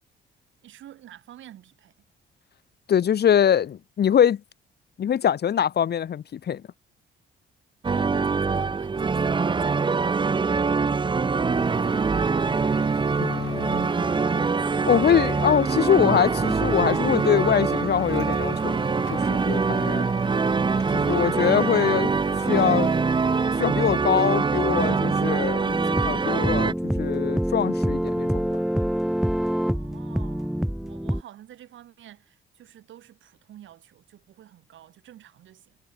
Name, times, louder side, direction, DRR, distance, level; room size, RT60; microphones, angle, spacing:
voice 1, 0.6-1.9 7.8-12.5 29.6-35.8, right 12 dB, 75° right, 5.7 m, -49 dB
voice 2, 2.9-4.4 5.0-6.6 13.2-13.9 14.9-20.1 20.9-22.1 22.5-22.9 23.6-28.5, left 9 dB, 55° left, 1.9 m, -23 dB
sound 1, 7.8-26.7, right 4 dB, 25° right, 0.8 m, -24 dB
Truck, 11.5-23.5, left 15 dB, 85° left, 4.1 m, -44 dB
sound 2, 25.7-31.2, equal, ahead, 1.1 m, -26 dB
cardioid pair, 90°, 20 cm